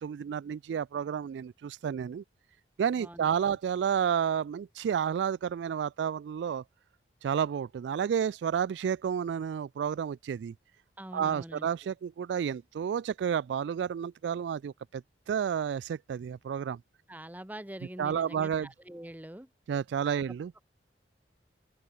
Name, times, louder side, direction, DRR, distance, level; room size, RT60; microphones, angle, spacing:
voice 1, 0.0-2.2 2.8-6.6 7.2-10.5 11.1-16.8 18.0-18.7 19.7-20.5, right 8 dB, 80° right, 0.3 m, -31 dB
voice 2, 3.0-3.6 11.0-11.7 17.1-19.5, right 1 dB, 10° right, 1.1 m, -44 dB
open air
head